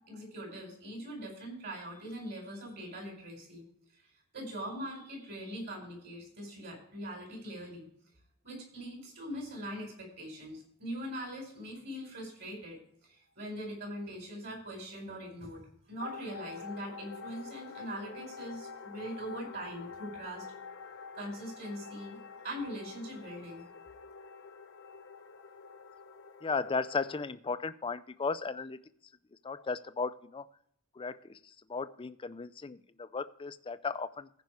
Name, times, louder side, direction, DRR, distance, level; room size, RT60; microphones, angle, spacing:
voice 1, 0.0-3.7 3.9-4.0 4.3-7.9 8.4-20.4 21.1-22.2 22.4-23.6, equal, 50° right, 1 dB, 4.8 m, -42 dB
sound 1, 16.0-27.2, left 5 dB, 55° left, 0.9 m, -47 dB
voice 2, 26.4-28.8 29.4-30.5 31.0-31.4 31.7-34.3, left 4 dB, 25° left, 13 dB, 0.4 m, -35 dB
15.0 x 5.3 x 4.7 m, 0.66 s
head